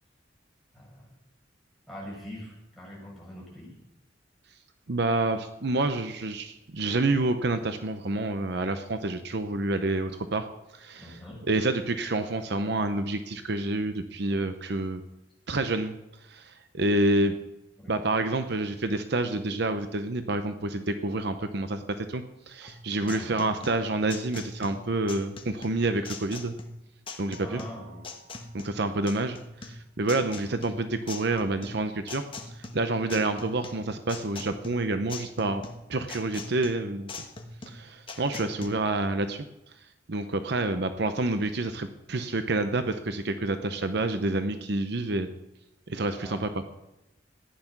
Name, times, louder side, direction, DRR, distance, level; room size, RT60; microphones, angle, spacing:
voice 1, 0.7-1.0 1.9-3.8 11.0-11.4 17.8-17.9 23.1-23.5 27.4-28.0 46.2-46.6, equal, ahead, -6 dB, 6.8 m, -43 dB
voice 2, 4.9-10.5 10.7-15.0 15.5-16.0 16.3-17.4 17.9-26.5 27.2-27.6 28.5-29.4 29.6-32.2 32.5-35.6 35.9-37.1 37.7-39.4 40.1-45.3 45.9-46.5, right 2 dB, 60° right, 9 dB, 0.8 m, -28 dB
sound 1, 22.7-38.7, left 3 dB, 30° left, 1.4 m, -42 dB
Keyboard (musical), 27.3-29.7, right 4 dB, 30° right, 5.5 m, -57 dB
14.5 x 10.5 x 6.0 m, 0.93 s
head